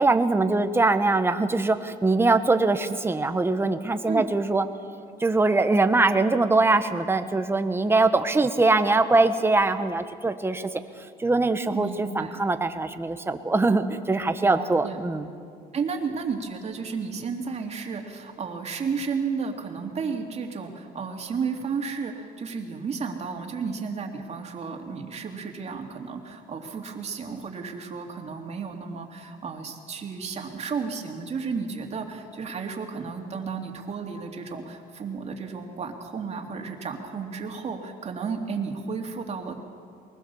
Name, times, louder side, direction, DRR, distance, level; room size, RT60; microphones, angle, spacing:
voice 1, 0.0-4.7 5.2-10.7 11.2-15.2, right 3 dB, 15° right, 9 dB, 1.2 m, -22 dB
voice 2, 11.7-12.4 14.4-15.0 15.7-39.6, right 5 dB, 40° right, 3 dB, 2.7 m, -33 dB
22.5 x 20.5 x 7.1 m, 2.3 s
cardioid pair, 110°, 17 cm